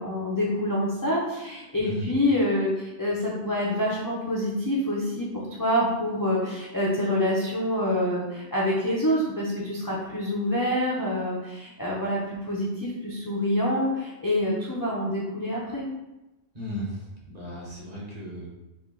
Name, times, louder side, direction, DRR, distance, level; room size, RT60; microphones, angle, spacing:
voice 1, 0.0-5.3 5.6-15.8, left 1 dB, 25° left, -7 dB, 0.4 m, -26 dB
voice 2, 16.5-18.5, equal, 40° right, -6 dB, 1.0 m, -36 dB
3.3 x 2.4 x 3.7 m, 1.0 s
omnidirectional pair, 1.2 m